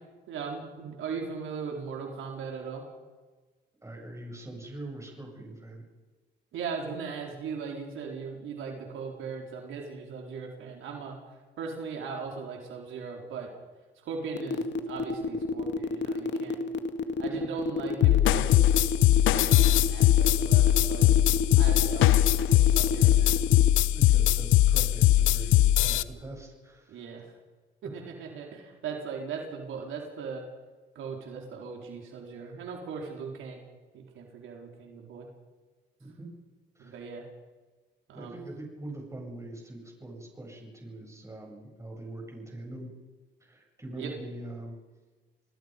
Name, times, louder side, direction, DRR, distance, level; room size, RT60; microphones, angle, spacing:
voice 1, 0.3-2.8 6.5-11.2 11.6-13.5 14.0-16.6 17.2-18.7 19.2-21.1 21.6-23.3 26.9-27.3 27.8-30.4 30.9-33.6 33.9-35.3 36.8-37.2 38.1-38.4 44.0-44.1, right 5 dB, 80° right, 1 dB, 4.3 m, -38 dB
voice 2, 3.8-5.8 17.2-17.5 23.9-27.1 36.0-36.3 36.7-37.0 38.1-43.0 43.4-44.8, right 1 dB, 15° right, 0 dB, 8.0 m, -43 dB
sound 1, 14.4-23.7, left 3 dB, 65° left, 1.8 m, -30 dB
sound 2, 18.0-26.0, left 14 dB, 85° left, 0.8 m, -21 dB
28.5 x 20.0 x 5.4 m, 1.3 s
cardioid pair, 90°, 20 cm